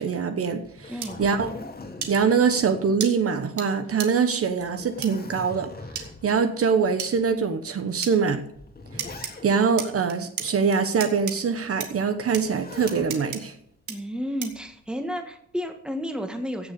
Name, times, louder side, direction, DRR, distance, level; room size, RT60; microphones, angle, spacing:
voice 1, 0.0-0.9 1.2-1.5 2.1-5.7 6.0-8.4 8.9-9.0 9.4-13.5, right 6 dB, 50° right, 8 dB, 1.1 m, -23 dB
Zipper (clothing), 0.6-3.5 3.9-4.0 4.5-6.4 7.1-7.2 8.2-9.8 12.2-13.1 14.5-15.0, left 2 dB, 30° left, 2.2 m, -41 dB
voice 2, 0.9-1.2 13.9-16.7, equal, 5° right, 5 dB, 1.7 m, -32 dB
sound 1, 1.0-1.1 2.0-2.1 3.0-3.1 3.6-3.7 4.0-4.1 5.0-5.1 6.0-6.1 7.0-7.1 8.0-8.1 9.0-9.3 9.8-10.5 11.0-11.4 11.8-11.9 12.3-12.4 12.9-13.4 13.9-14.0 14.4-14.6, right 7 dB, 75° right, 2.2 m, -32 dB
16.0 x 6.9 x 6.7 m, 0.70 s
cardioid pair, 135°, 30 cm